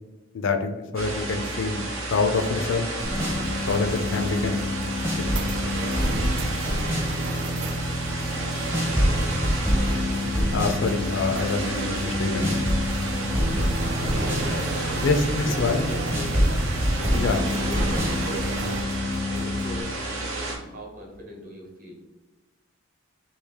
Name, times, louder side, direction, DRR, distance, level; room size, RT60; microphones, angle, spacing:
voice 1, 0.3-2.9 3.7-4.6 5.2-5.3 10.5-12.6 15.0-15.8 17.1-17.4, left 4 dB, 65° left, 6 dB, 0.4 m, -26 dB
sound 1, 1.0-20.6, right 2 dB, 75° right, 0.8 m, -32 dB
sound 2, 3.0-19.8, left 1 dB, 10° right, 0.6 m, -27 dB
sound 3, 3.0-18.8, right 3 dB, 60° right, 0.3 m, -36 dB
voice 2, 9.0-9.3 9.7-10.0 14.0-16.6 16.9-18.6 19.3-21.9, equal, 40° right, -1 dB, 1.0 m, -40 dB
3.2 x 2.7 x 3.5 m, 1.1 s
head